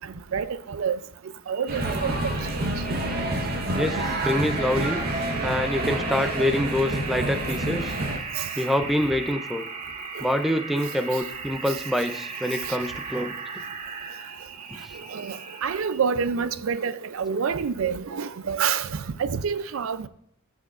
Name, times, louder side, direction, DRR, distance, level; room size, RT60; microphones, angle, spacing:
voice 1, 0.3-1.0 1.5-2.7 8.3-8.5 10.2-10.3 15.1-20.1, right 6 dB, 70° right, 0.4 m, -28 dB
sound 1, 1.5-16.1, right 4 dB, 30° right, 0.8 m, -37 dB
sound 2, 1.7-8.2, right 1 dB, 45° right, 1.1 m, -28 dB
voice 2, 3.7-5.0 5.4-7.9 8.6-9.7 10.2-13.3, left 1 dB, ahead, 0.5 m, -26 dB
14.0 x 6.0 x 2.5 m
head